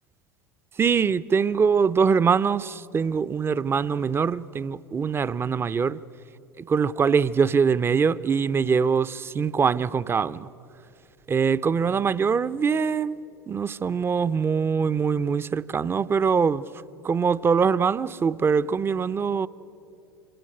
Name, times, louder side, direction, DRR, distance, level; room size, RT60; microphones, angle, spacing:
voice 1, 0.8-6.0 6.6-10.5 11.3-13.2 13.5-16.6 17.0-19.5, right 6 dB, 20° right, 0.6 m, -23 dB
26.5 x 24.5 x 6.6 m
figure-of-eight pair, 80°, 11 cm